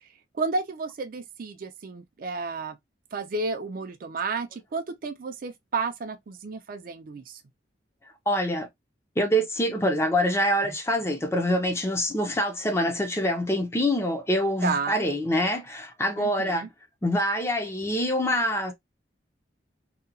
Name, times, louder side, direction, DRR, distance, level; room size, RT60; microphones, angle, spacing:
voice 1, 0.3-2.8 3.1-7.4 14.6-15.0 16.2-16.7, right 4 dB, 50° right, 0.4 m, -32 dB
voice 2, 8.3-8.7 9.2-16.7 17.0-18.7, equal, 15° left, 0.5 m, -25 dB
2.8 x 2.2 x 2.4 m
head